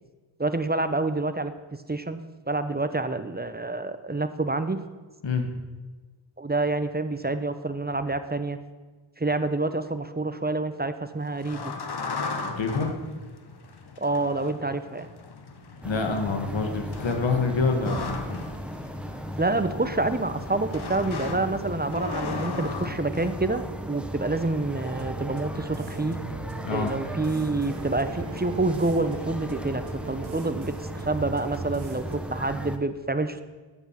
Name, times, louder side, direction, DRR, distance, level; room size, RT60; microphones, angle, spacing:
voice 1, 0.4-1.5 1.9-2.2 2.5-4.8 6.4-8.6 9.2-11.7 14.0-15.1 19.4-26.2 26.7-33.4, right 2 dB, 20° right, 10 dB, 0.9 m, -27 dB
sound 1, 11.2-23.3, left 4 dB, 60° left, 1.4 m, -37 dB
voice 2, 12.5-12.9 15.8-18.4 26.6-26.9, left 4 dB, 80° left, 5 dB, 1.9 m, -26 dB
sound 2, 15.8-32.8, equal, ahead, 1.2 m, -37 dB
sound 3, 24.8-32.2, right 4 dB, 90° right, 1.2 m, -39 dB
12.0 x 8.2 x 5.9 m, 1.3 s
cardioid pair, 45°, 45 cm